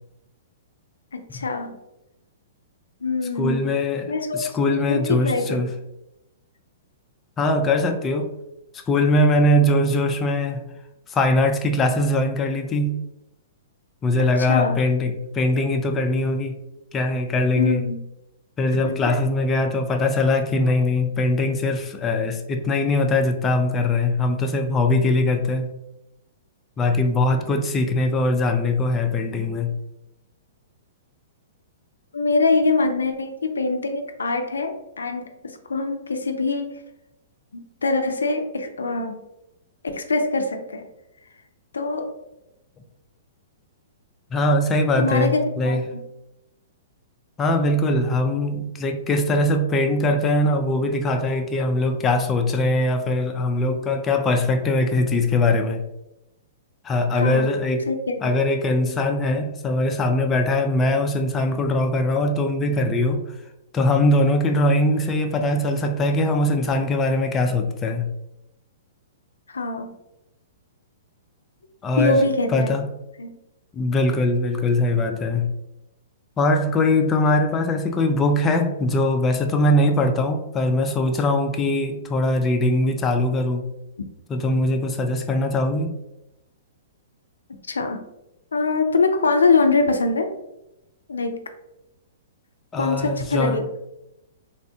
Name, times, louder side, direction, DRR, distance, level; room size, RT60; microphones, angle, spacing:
voice 1, 1.1-1.8 3.0-3.7 4.1-4.6 4.9-5.7 14.2-14.8 17.6-18.0 18.8-19.1 32.1-36.8 37.5-39.2 39.9-40.9 41.7-42.1 45.0-46.0 57.1-57.5 57.9-58.4 69.5-69.9 72.0-72.8 73.2-73.4 87.7-88.0 88.5-90.3 91.1-91.4 92.8-93.7, left 3 dB, 90° left, 6 dB, 0.4 m, -23 dB
voice 2, 3.4-5.7 7.4-8.3 8.9-10.7 11.1-13.0 14.0-16.6 16.9-17.8 18.6-25.7 26.8-29.7 44.3-45.9 47.4-55.8 56.8-57.9 58.2-63.2 63.7-68.1 71.8-72.9 73.7-75.5 76.4-83.7 84.3-85.9 92.7-93.6, left 2 dB, 20° left, 4 dB, 0.4 m, -21 dB
3.4 x 2.1 x 2.7 m, 0.89 s
hypercardioid pair, 125°, 0 cm